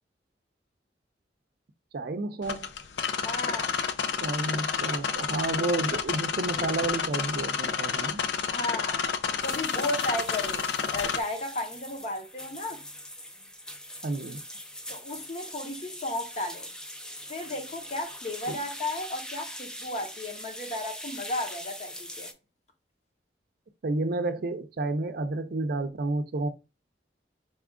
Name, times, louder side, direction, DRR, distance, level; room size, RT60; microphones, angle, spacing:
voice 1, 1.9-2.7 4.2-8.2 14.0-14.4 18.5-18.6 23.8-26.5, right 2 dB, 60° right, 0.5 m, -30 dB
sound 1, 2.4-11.2, left 6 dB, 75° left, 0.4 m, -30 dB
voice 2, 3.2-3.7 8.4-12.8 14.9-16.7 17.3-22.3, left 1 dB, 40° left, 0.8 m, -34 dB
sound 2, 9.4-22.3, left 1 dB, 5° left, 0.3 m, -42 dB
4.2 x 2.4 x 3.5 m
head